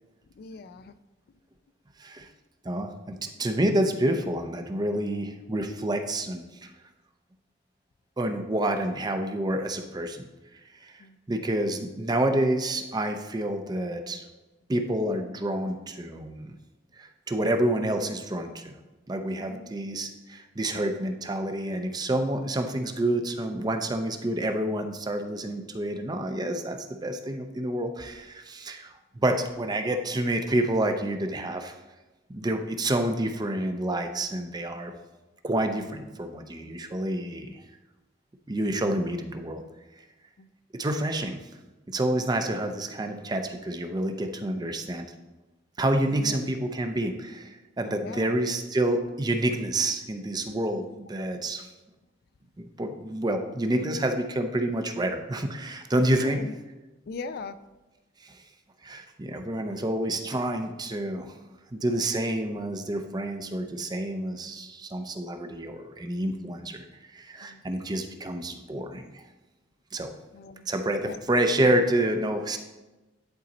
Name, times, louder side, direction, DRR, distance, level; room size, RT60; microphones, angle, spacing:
voice 1, 0.4-1.0 11.0-11.2 19.4-19.7 40.4-40.5 46.1-46.4 47.9-48.4 50.5-50.6 56.1-56.5 57.1-57.6 67.4-67.6 70.3-70.7 71.0-71.3, left 4 dB, 55° left, 12 dB, 0.3 m, -40 dB
voice 2, 2.6-6.7 8.2-10.3 10.8-14.2 14.7-16.5 17.0-18.7 19.1-31.8 32.3-34.9 35.4-37.6 38.5-39.6 40.7-41.4 41.9-45.1 45.8-51.7 52.6-56.4 58.2-58.4 58.8-61.4 61.7-66.8 67.1-69.2 69.9-70.1 70.7-72.6, right 1 dB, 20° right, 6 dB, 0.5 m, -28 dB
10.5 x 4.1 x 4.0 m, 1.1 s
head